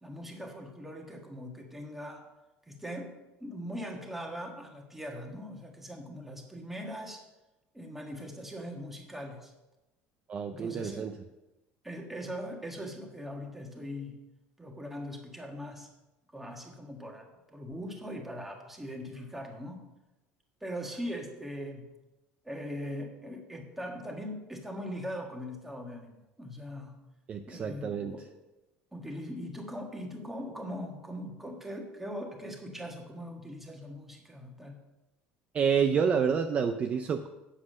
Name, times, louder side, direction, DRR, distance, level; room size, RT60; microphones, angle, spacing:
voice 1, 0.0-2.2 2.7-3.1 3.4-7.2 7.7-9.5 10.5-11.2 11.8-14.2 14.6-15.9 16.3-19.8 20.6-21.8 22.4-27.0 27.5-28.3 28.9-34.8, equal, 5° right, 2 dB, 1.5 m, -40 dB
voice 2, 10.3-11.1 27.3-28.1 35.5-37.3, right 6 dB, 30° right, 6 dB, 0.5 m, -28 dB
8.3 x 7.4 x 6.3 m, 1.0 s
cardioid pair, 155°, 4 cm